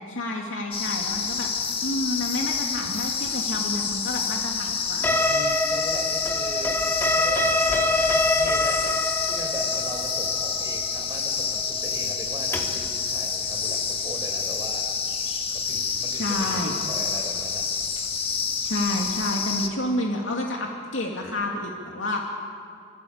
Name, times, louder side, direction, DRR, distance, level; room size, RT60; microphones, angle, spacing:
voice 1, 0.1-1.5 1.8-5.2 16.1-16.8 18.6-22.2, left 1 dB, 75° left, 0 dB, 2.5 m, -29 dB
sound 1, 0.7-19.7, left 6 dB, 30° left, 1.8 m, -28 dB
sound 2, 5.0-12.9, left 2 dB, 10° left, 2.9 m, -25 dB
voice 2, 5.3-6.8 7.1-14.8 15.5-17.7, right 1 dB, 15° right, 1 dB, 4.8 m, -39 dB
26.0 x 24.5 x 8.8 m, 2.4 s
head